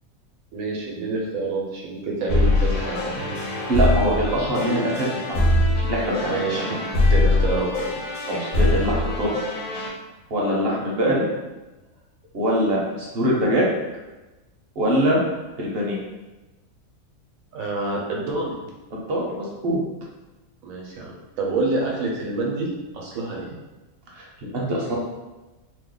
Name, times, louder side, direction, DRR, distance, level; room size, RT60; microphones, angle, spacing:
voice 1, 0.5-3.2 6.2-8.0 17.5-18.5 20.6-22.7 22.9-23.5, right 3 dB, 75° right, -2 dB, 1.1 m, -27 dB
sound 1, 2.3-9.9, left 2 dB, 85° left, 1.2 m, -23 dB
voice 2, 3.7-5.5 5.7-6.4 8.3-9.4 10.3-11.2 12.3-13.7 14.8-15.2 15.6-16.0 18.9-19.8 24.1-25.0, equal, 55° right, -4 dB, 0.8 m, -23 dB
2.8 x 2.1 x 3.7 m, 1.1 s
omnidirectional pair, 1.5 m